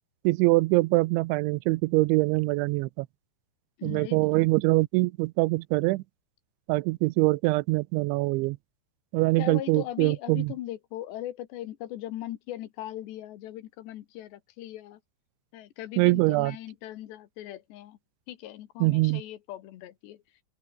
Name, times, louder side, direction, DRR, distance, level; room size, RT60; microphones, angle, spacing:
voice 1, 0.2-3.1 3.8-6.0 6.7-8.6 9.1-10.5 16.0-16.6 18.8-19.2, right 22 dB, 85° right, 3.0 m, -24 dB
voice 2, 3.8-4.3 9.4-15.0 15.5-18.0 18.3-20.2, left 13 dB, 70° left, 3.4 m, -39 dB
open air
omnidirectional pair, 5.3 m